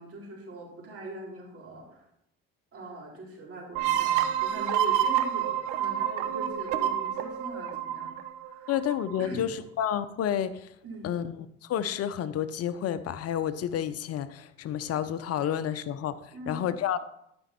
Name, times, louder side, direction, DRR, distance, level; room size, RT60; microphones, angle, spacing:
voice 1, 0.0-2.0 2.7-8.2 8.5-8.7 9.2-9.5 10.8-11.1 16.3-16.6, equal, 45° right, -2 dB, 4.0 m, -41 dB
sound 1, 3.7-9.2, right 10 dB, 70° right, 1.0 m, -28 dB
voice 2, 8.7-10.7 11.0-16.1 16.5-17.0, left 9 dB, 50° left, 13 dB, 0.7 m, -30 dB
12.5 x 5.3 x 4.3 m, 0.77 s
hypercardioid pair, 70°, 31 cm